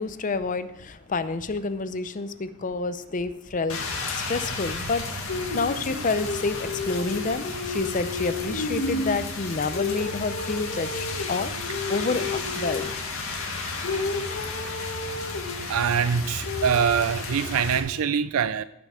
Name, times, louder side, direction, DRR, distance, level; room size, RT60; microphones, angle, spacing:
voice 1, 0.0-12.9, left 3 dB, 35° left, 13 dB, 0.5 m, -29 dB
Rain, 3.7-17.8, left 3 dB, 75° left, 2.0 m, -31 dB
voice 2, 15.7-18.6, right 7 dB, 75° right, 14 dB, 0.4 m, -24 dB
16.0 x 6.7 x 4.9 m, 0.84 s
head